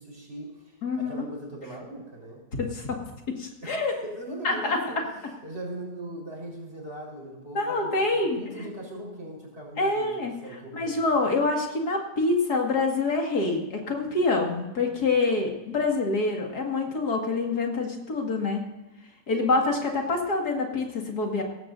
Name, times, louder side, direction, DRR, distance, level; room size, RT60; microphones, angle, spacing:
voice 1, 0.0-2.4 3.6-5.0 5.4-11.0, right 1 dB, 40° right, -2 dB, 4.6 m, -40 dB
voice 2, 0.8-1.3 2.6-3.0 3.3-3.9 4.4-5.0 7.5-8.7 9.8-10.3 10.7-18.7 19.3-21.4, left 3 dB, 75° left, 1 dB, 2.5 m, -26 dB
18.0 x 15.0 x 2.6 m, 1.0 s
omnidirectional pair, 1.7 m